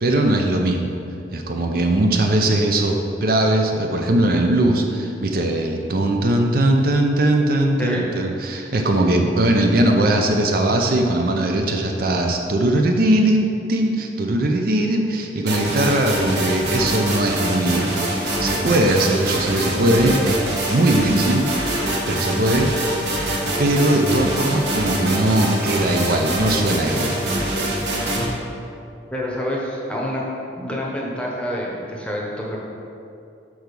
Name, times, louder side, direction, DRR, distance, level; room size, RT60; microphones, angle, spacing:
voice 1, 0.0-0.9 1.3-21.7 22.1-22.7 23.6-27.2, right 1 dB, 50° right, 3 dB, 0.5 m, -20 dB
sound 1, 15.5-28.3, right 1 dB, 65° right, 1.4 m, -24 dB
voice 2, 29.1-30.2 30.6-32.6, equal, 5° left, -3 dB, 0.9 m, -27 dB
6.4 x 4.6 x 5.2 m, 2.6 s
head